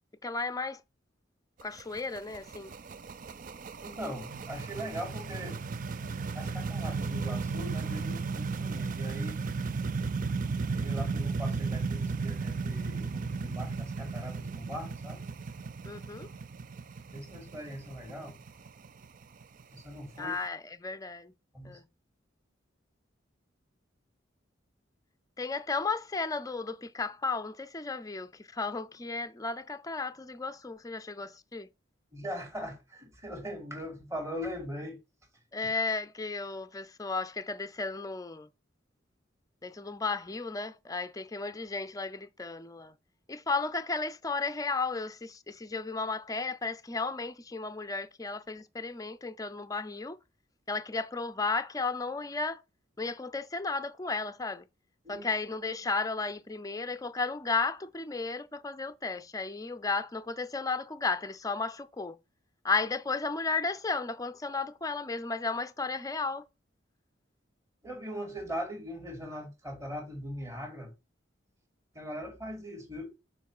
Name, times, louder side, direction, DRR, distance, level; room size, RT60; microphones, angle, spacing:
voice 1, 0.2-0.8 1.6-2.7 15.9-16.3 20.2-21.3 21.6-21.8 25.4-31.7 35.5-38.5 39.6-43.0 43.3-50.2 50.7-52.6 53.0-54.7 55.1-62.2 62.6-66.4, left 4 dB, 20° left, 0.5 m, -34 dB
sound 1, 1.6-20.4, right 4 dB, 45° right, 0.4 m, -35 dB
voice 2, 3.8-5.6 6.3-9.4 10.7-15.3 17.1-18.4 19.7-20.3 21.5-21.8 32.1-35.0 55.0-55.3 67.8-70.9 71.9-73.2, equal, 15° right, 2.2 m, -40 dB
6.9 x 4.7 x 4.8 m
head